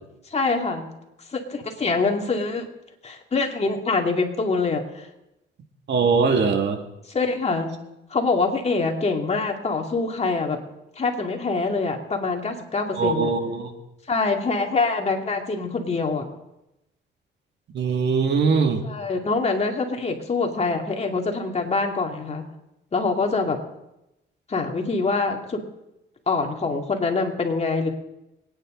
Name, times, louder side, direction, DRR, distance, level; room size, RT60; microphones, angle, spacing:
voice 1, 0.3-0.9 1.3-2.7 3.0-5.1 7.1-7.7 8.1-10.6 11.0-13.3 14.1-16.2 18.8-22.4 22.9-23.6 24.5-25.6 26.3-27.9, left 3 dB, 35° left, 2 dB, 2.4 m, -24 dB
voice 2, 5.9-6.8 13.0-13.7 17.7-18.8, right 5 dB, 60° right, 4 dB, 2.2 m, -21 dB
25.5 x 9.7 x 3.9 m, 0.91 s
cardioid pair, 90°, 20 cm